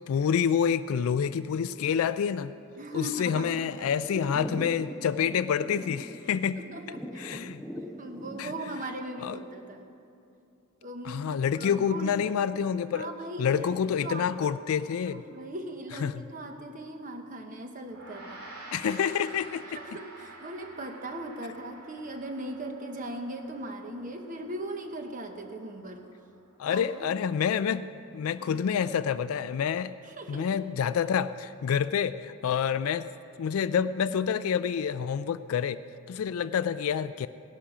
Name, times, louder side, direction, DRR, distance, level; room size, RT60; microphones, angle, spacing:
voice 1, 0.0-2.5 2.9-6.6 7.2-7.6 8.4-8.5 9.2-9.4 11.0-13.1 13.4-15.2 16.0-16.2 18.7-19.6 26.6-27.8 28.1-29.9 30.3-33.1 33.4-35.8 36.1-37.3, left 7 dB, 75° left, 12 dB, 0.3 m, -28 dB
Thunder / Rain, 2.5-8.9, equal, ahead, 0.5 m, -43 dB
voice 2, 2.8-3.5 4.1-4.4 6.6-7.4 8.0-9.8 10.8-12.1 12.9-14.3 15.1-18.4 19.7-26.1 26.7-27.2 28.4-28.7 30.0-30.5, right 1 dB, 35° right, 5 dB, 1.0 m, -39 dB
Gong, 17.8-27.4, right 2 dB, 85° right, 2.7 m, -49 dB
17.0 x 11.5 x 4.9 m, 2.7 s
head